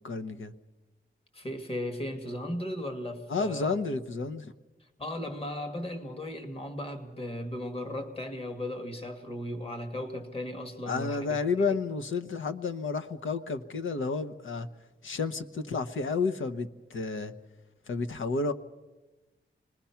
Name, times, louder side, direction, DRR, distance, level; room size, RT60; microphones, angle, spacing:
voice 1, 0.0-0.5 3.3-4.5 10.9-14.7 15.0-17.3 17.9-18.5, left 4 dB, 80° left, 1.1 m, -31 dB
voice 2, 1.3-3.8 5.0-11.7, left 1 dB, 30° left, 1.9 m, -36 dB
26.5 x 20.0 x 5.9 m
wide cardioid pair, 145°, 20 cm